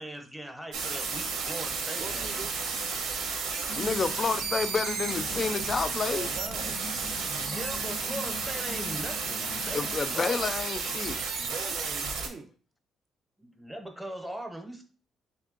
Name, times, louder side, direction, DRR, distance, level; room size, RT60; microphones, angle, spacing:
voice 1, 0.0-2.4 7.1-10.4 13.4-14.8, right 1 dB, 5° right, 0.7 m, -40 dB
sound 1, 0.7-12.3, right 5 dB, 90° right, 0.8 m, -32 dB
voice 2, 1.9-2.6 6.1-6.8 11.4-12.5, right 4 dB, 40° right, 0.5 m, -42 dB
sound 2, 3.7-10.0, left 4 dB, 90° left, 0.5 m, -43 dB
voice 3, 3.8-6.3 9.7-11.2, left 4 dB, 30° left, 0.3 m, -30 dB
3.4 x 3.1 x 3.7 m
cardioid pair, 140°, 0 cm